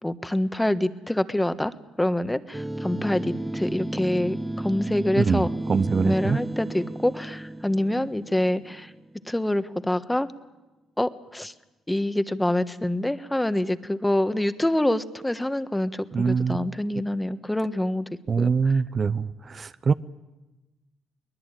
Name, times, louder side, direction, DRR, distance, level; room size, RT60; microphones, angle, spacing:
voice 1, 0.0-5.5 6.0-8.9 9.3-10.3 11.0-11.5 11.9-18.0 18.4-18.5, left 1 dB, 10° left, 12 dB, 1.3 m, -26 dB
sound 1, 2.5-9.1, right 1 dB, 10° right, 0.9 m, -33 dB
voice 2, 5.2-6.4 16.1-16.8 18.3-19.9, right 5 dB, 45° right, 13 dB, 0.7 m, -24 dB
22.5 x 20.0 x 9.0 m, 1.1 s
supercardioid pair, 65°, 0 cm